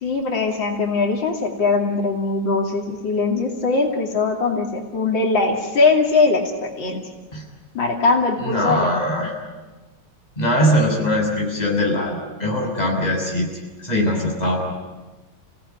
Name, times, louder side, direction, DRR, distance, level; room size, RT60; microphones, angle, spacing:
voice 1, 0.0-6.4 6.8-7.0 7.8-9.2, left 3 dB, 90° left, 1 dB, 3.4 m, -21 dB
voice 2, 8.4-9.3 10.4-13.5 13.8-14.6, equal, 20° left, 0 dB, 6.6 m, -21 dB
30.0 x 17.5 x 9.5 m, 1.2 s
omnidirectional pair, 2.0 m